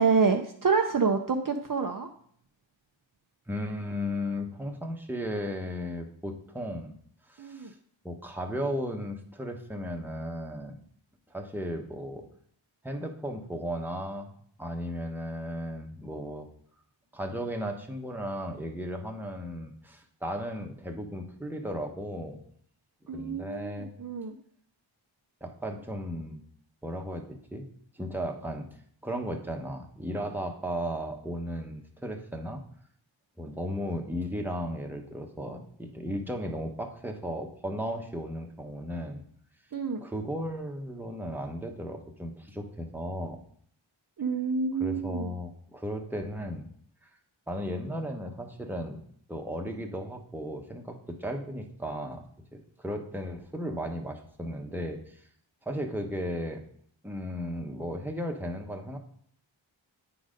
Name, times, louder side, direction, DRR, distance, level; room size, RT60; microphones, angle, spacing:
voice 1, 0.0-2.1 7.4-7.7 23.1-24.3 39.7-40.0 44.2-45.3, right 5 dB, 45° right, 4 dB, 0.6 m, -27 dB
voice 2, 3.5-7.0 7.3-7.7 8.0-10.8 11.3-12.2 12.8-14.3 14.6-16.5 17.1-22.4 23.1-23.9 25.4-26.4 26.8-27.6 27.9-28.8 29.0-32.6 33.4-39.2 40.0-43.4 44.8-46.7 47.5-49.0 49.3-55.2 55.6-56.6 57.0-59.0, equal, 5° right, 2 dB, 1.0 m, -35 dB
8.5 x 4.1 x 5.0 m, 0.63 s
wide cardioid pair, 55°, 48 cm